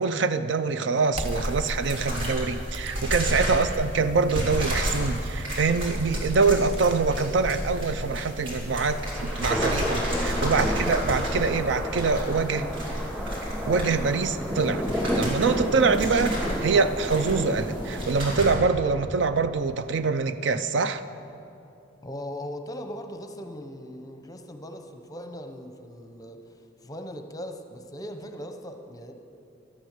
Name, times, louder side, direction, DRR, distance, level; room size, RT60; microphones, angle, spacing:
voice 1, 0.0-12.7 13.7-21.0, right 4 dB, 65° right, 11 dB, 0.5 m, -25 dB
sound 1, 1.0-1.7 2.7-3.8 4.6-6.9, right 1 dB, 30° right, 0.8 m, -41 dB
sound 2, 1.2-18.5, equal, 85° right, 3.7 m, -31 dB
voice 2, 3.2-3.6 22.0-29.1, equal, 20° left, 6 dB, 0.7 m, -39 dB
sound 3, 8.5-18.9, equal, 10° right, 2.2 m, -32 dB
12.5 x 9.5 x 6.6 m, 2.7 s
head